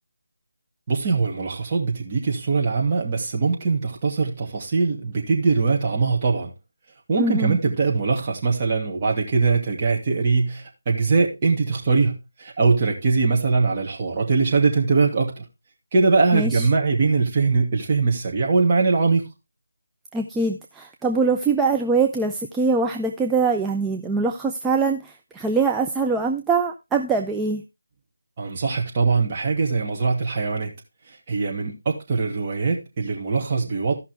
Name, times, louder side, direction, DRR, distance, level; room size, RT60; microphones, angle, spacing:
voice 1, 0.9-6.5 7.1-15.4 15.9-19.3 28.4-30.7 31.3-33.9, right 4 dB, 30° right, 2.4 m, -22 dB
voice 2, 7.2-7.6 16.3-16.7 20.1-27.6, right 4 dB, 5° right, 0.4 m, -23 dB
14.5 x 5.7 x 3.6 m
figure-of-eight pair, 160°, 0 cm